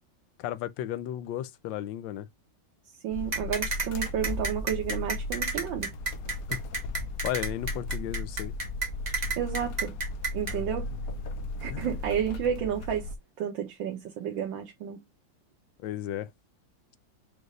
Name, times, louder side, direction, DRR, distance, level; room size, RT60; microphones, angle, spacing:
voice 1, 0.4-2.3 6.5-6.6 7.2-8.5 10.5-10.6 11.7-11.9 15.8-16.3, left 12 dB, 85° left, 1.3 m, -34 dB
voice 2, 3.0-5.9 9.4-9.9 10.3-10.9 11.6-13.1 13.4-15.0, right 9 dB, 90° right, 1.7 m, -31 dB
sound 1, 3.1-13.2, left 2 dB, 65° left, 1.0 m, -36 dB
sound 2, 3.3-10.5, right 3 dB, 30° right, 1.0 m, -31 dB
5.2 x 2.5 x 3.1 m
omnidirectional pair, 2.0 m